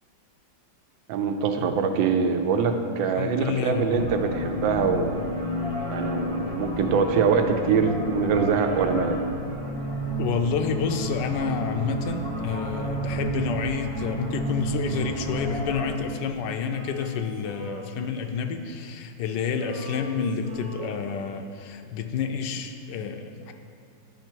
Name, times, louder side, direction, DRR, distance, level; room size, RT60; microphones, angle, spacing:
voice 1, 1.1-5.2 5.9-9.2, right 6 dB, 80° right, 6 dB, 1.3 m, -24 dB
voice 2, 3.1-4.0 10.2-23.5, left 6 dB, 75° left, 6 dB, 1.2 m, -29 dB
sound 1, 3.8-15.8, equal, 5° left, 0.5 m, -31 dB
Male singing, 16.7-19.2 19.4-21.6, right 1 dB, 50° right, 1.6 m, -43 dB
9.9 x 5.8 x 4.5 m, 2.4 s
omnidirectional pair, 2.1 m